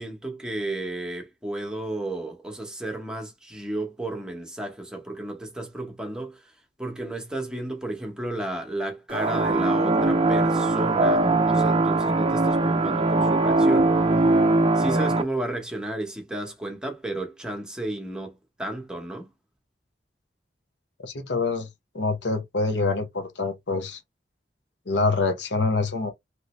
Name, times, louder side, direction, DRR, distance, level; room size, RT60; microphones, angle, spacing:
voice 1, 0.0-6.5 6.8-14.2 14.7-19.3, right 1 dB, 5° right, 0.9 m, -33 dB
sound 1, 9.1-15.2, right 2 dB, 30° right, 0.4 m, -21 dB
voice 2, 21.0-21.7 21.9-24.0 24.9-26.1, left 3 dB, 80° left, 0.8 m, -25 dB
3.0 x 2.6 x 3.0 m
head